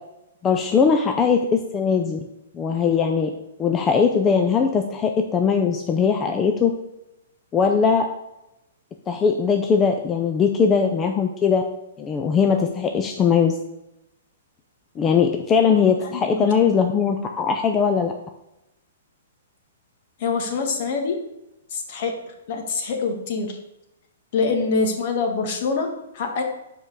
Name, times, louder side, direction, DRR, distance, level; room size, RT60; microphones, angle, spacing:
voice 1, 0.4-2.2 2.5-3.3 3.6-6.7 7.5-8.1 9.1-11.6 12.0-13.5 15.0-18.1, left 6 dB, 20° left, 4 dB, 0.6 m, -20 dB
voice 2, 16.0-16.4 20.2-21.2 21.7-22.1 22.5-23.6 24.3-25.9 26.1-26.4, left 4 dB, 50° left, 3 dB, 1.6 m, -25 dB
5.5 x 4.7 x 6.3 m, 0.90 s
hypercardioid pair, 135°, 0 cm